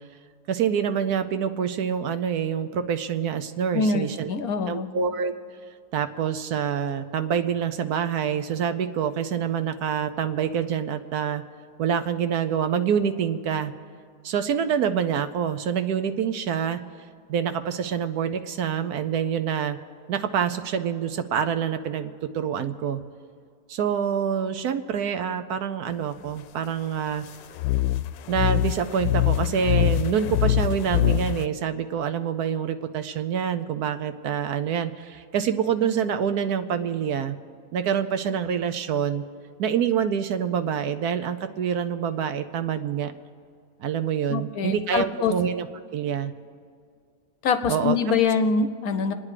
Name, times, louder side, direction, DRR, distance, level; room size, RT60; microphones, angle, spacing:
voice 1, 0.5-4.3 4.7-5.3 5.9-11.4 11.8-13.7 14.2-16.8 17.3-19.8 20.1-23.0 23.7-27.3 28.3-37.4 37.7-39.2 39.6-43.1 43.8-45.7 45.9-46.3 47.7-48.0, right 8 dB, 70° right, 10 dB, 1.1 m, -26 dB
voice 2, 3.7-4.9 44.3-45.3 47.4-49.1, left 5 dB, 65° left, 9 dB, 1.1 m, -24 dB
sound 1, 27.6-31.5, left 12 dB, 90° left, 1.2 m, -23 dB
27.5 x 9.6 x 4.9 m, 2.2 s
omnidirectional pair, 1.9 m